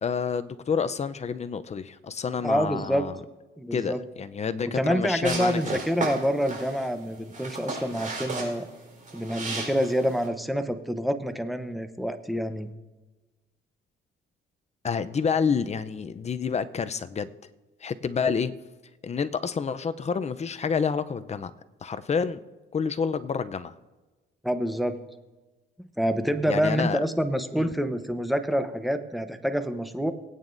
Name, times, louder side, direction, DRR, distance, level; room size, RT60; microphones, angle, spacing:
voice 1, 0.0-3.2 3.7-5.8 14.8-17.3 17.8-18.5 19.0-21.5 21.8-22.4 22.7-23.7 26.5-27.0 27.6-27.7, left 6 dB, 35° left, 11 dB, 0.6 m, -28 dB
voice 2, 2.4-3.0 3.6-4.0 4.6-8.7 9.1-12.7 24.4-25.0 25.8-30.1, equal, ahead, 9 dB, 0.9 m, -27 dB
sound 1, 5.2-10.3, right 3 dB, 40° right, 4.3 m, -35 dB
20.5 x 9.1 x 2.6 m, 1.2 s
cardioid pair, 90°, 20 cm